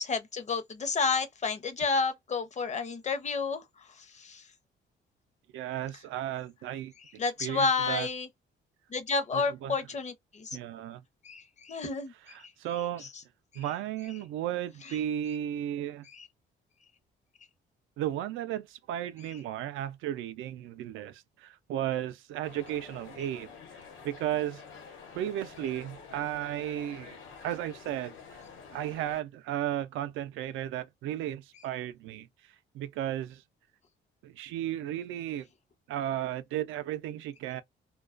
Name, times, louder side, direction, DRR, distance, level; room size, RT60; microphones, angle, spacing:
voice 1, 0.0-3.6 4.0-4.4 7.2-8.3 8.9-10.6 11.2-12.1 16.1-16.3, left 4 dB, 35° left, 0.6 m, -30 dB
voice 2, 5.5-6.9 7.4-8.1 9.3-9.8 10.5-11.0 12.3-13.1 13.5-16.1 18.0-23.5 24.0-24.6 25.1-28.4 28.7-32.3 32.7-33.4 34.2-35.5 35.9-37.6, right 11 dB, 90° right, 0.4 m, -34 dB
sound 1, 22.4-29.2, left 5 dB, 90° left, 1.0 m, -49 dB
2.3 x 2.2 x 2.4 m
cardioid pair, 90°, 20 cm